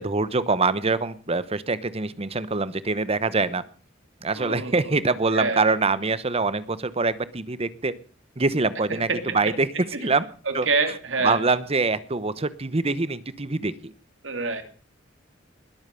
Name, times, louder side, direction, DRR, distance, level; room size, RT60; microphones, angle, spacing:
voice 1, 0.0-3.6 4.2-7.9 8.4-10.3 10.5-10.7 11.2-13.7, right 3 dB, 30° right, 16 dB, 1.0 m, -24 dB
voice 2, 4.3-4.9 5.3-5.8 8.9-9.5 9.9-10.1 10.5-11.4 14.2-14.6, right 4 dB, 70° right, 7 dB, 3.0 m, -27 dB
21.0 x 8.8 x 6.9 m, 0.43 s
head